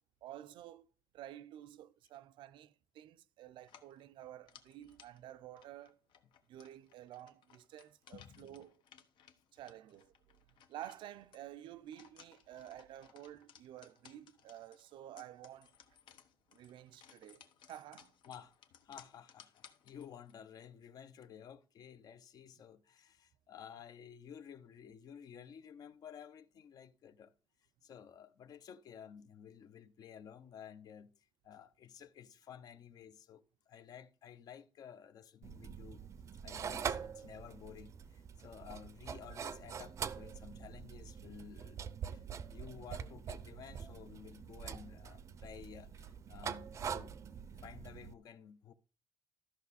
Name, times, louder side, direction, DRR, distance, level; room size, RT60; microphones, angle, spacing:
voice 1, 0.2-0.9 1.1-6.0 6.5-8.8 9.5-10.1 10.7-15.8 16.5-18.1, right 12 dB, 85° right, 0.5 m, -51 dB
sound 1, 3.6-20.4, left 8 dB, 75° left, 1.1 m, -63 dB
voice 2, 8.1-8.6 18.3-18.5 18.8-27.3 27.8-36.1 36.4-47.2 47.6-48.7, left 8 dB, 50° left, 0.6 m, -53 dB
sound 2, 35.4-48.1, right 7 dB, 40° right, 0.5 m, -44 dB
13.0 x 6.1 x 4.1 m
cardioid pair, 175°, 8 cm